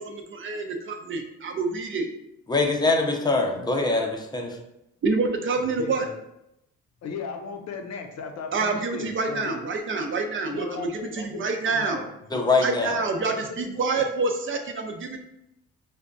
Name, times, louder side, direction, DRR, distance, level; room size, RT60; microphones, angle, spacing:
voice 1, 0.0-2.1 5.0-6.1 8.5-12.0 12.6-15.2, right 3 dB, 40° right, 4 dB, 0.5 m, -27 dB
voice 2, 2.5-4.5 12.3-13.0, left 3 dB, 15° left, 2 dB, 0.6 m, -23 dB
voice 3, 5.7-6.2 7.0-9.6 10.5-12.7 13.2-14.1, left 5 dB, 60° left, 4 dB, 0.6 m, -37 dB
4.8 x 2.2 x 2.6 m, 0.83 s
cardioid pair, 90°, 30 cm